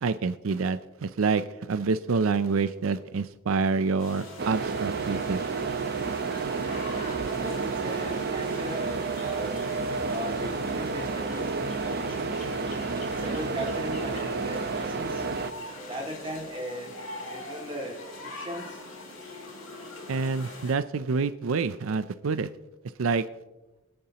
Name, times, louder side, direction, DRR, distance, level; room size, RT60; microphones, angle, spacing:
voice 1, 0.0-5.4 20.1-22.5 23.0-23.3, right 4 dB, 85° right, 13 dB, 0.5 m, -27 dB
sound 1, 4.0-20.7, left 2 dB, 85° left, 3.6 m, -43 dB
sound 2, 4.4-15.5, right 4 dB, 50° right, 0.7 m, -30 dB
voice 2, 7.2-12.4 13.1-15.3 15.8-16.9 17.3-18.8, equal, 25° right, 0 dB, 2.2 m, -38 dB
23.5 x 8.6 x 2.9 m, 1.0 s
head